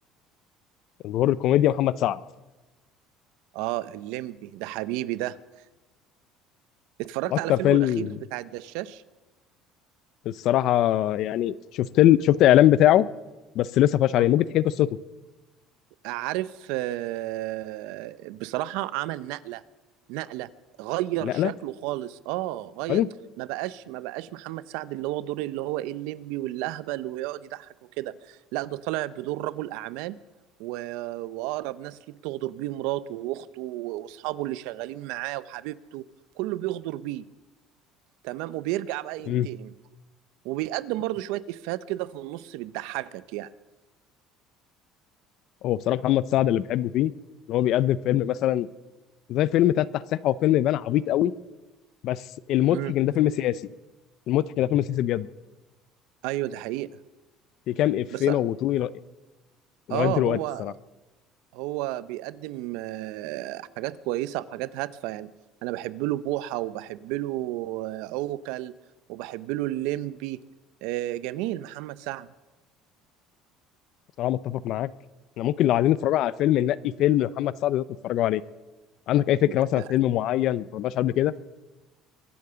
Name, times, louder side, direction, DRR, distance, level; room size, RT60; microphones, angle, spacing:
voice 1, 1.0-2.2 7.3-8.1 10.3-13.1 13.6-14.9 21.2-21.5 22.9-23.1 39.3-39.5 45.6-47.1 47.5-48.7 49.3-51.3 52.0-52.2 52.5-53.6 54.3-55.3 57.7-58.9 59.9-60.7 74.2-74.9 75.4-78.4 79.1-81.3, left 13 dB, 45° left, 19 dB, 0.5 m, -22 dB
voice 2, 3.5-5.4 7.0-9.0 14.2-14.3 16.0-19.6 20.1-20.5 20.8-23.0 23.4-30.2 30.6-36.0 36.4-37.2 38.2-39.7 40.4-43.5 52.7-52.9 56.2-56.9 58.1-58.4 59.9-60.7 61.5-65.3 65.6-68.7 69.1-70.4 70.8-72.3 79.5-79.8, right 16 dB, 80° right, 17 dB, 0.6 m, -32 dB
23.5 x 8.6 x 6.9 m, 1.1 s
cardioid pair, 180°, 0 cm